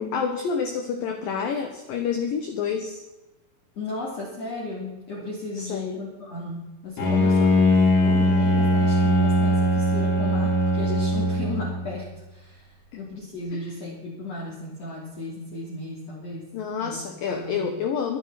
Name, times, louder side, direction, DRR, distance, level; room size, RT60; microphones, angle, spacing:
voice 1, 0.0-3.0 5.5-6.1 12.9-13.0 13.5-13.6 16.5-18.2, left 6 dB, 70° left, 4 dB, 2.3 m, -28 dB
voice 2, 3.8-16.5 16.8-17.0 17.3-17.7, left 2 dB, 35° left, -5 dB, 3.7 m, -35 dB
Bowed string instrument, 7.0-11.9, left 1 dB, 90° left, 7.0 m, -21 dB
23.5 x 10.0 x 4.2 m, 1.0 s
omnidirectional pair, 5.6 m